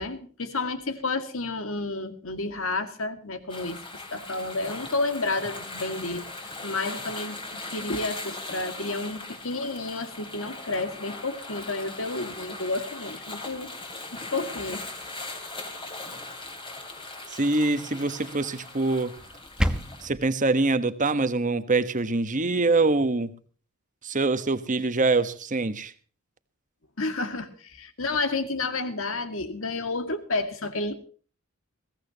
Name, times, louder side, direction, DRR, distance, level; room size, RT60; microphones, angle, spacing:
voice 1, 0.0-13.7 14.1-14.9 27.0-30.9, left 3 dB, 65° left, 2.1 m, -31 dB
sound 1, 3.5-20.1, left 2 dB, 25° left, 3.2 m, -39 dB
voice 2, 17.3-19.1 20.0-23.3 24.0-25.9, right 3 dB, 35° right, 1.2 m, -24 dB
sound 2, 19.2-20.2, equal, 5° right, 1.1 m, -28 dB
21.5 x 17.0 x 2.9 m
head